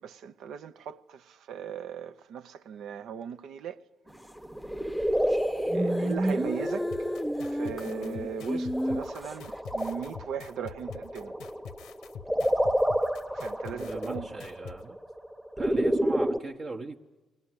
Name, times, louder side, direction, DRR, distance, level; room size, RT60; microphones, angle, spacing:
voice 1, 0.0-3.8 5.7-6.9 7.5-11.3 13.3-14.3, right 7 dB, 75° right, 0.7 m, -38 dB
sound 1, 4.4-16.4, equal, 10° right, 1.0 m, -30 dB
sound 2, 4.9-5.0 5.3-9.3, equal, 10° left, 0.7 m, -31 dB
sound 3, 6.9-14.8, left 8 dB, 90° left, 0.9 m, -45 dB
voice 2, 13.7-15.0 15.6-17.0, right 3 dB, 45° right, 1.0 m, -38 dB
20.5 x 20.0 x 9.7 m
cardioid pair, 90°, 0 cm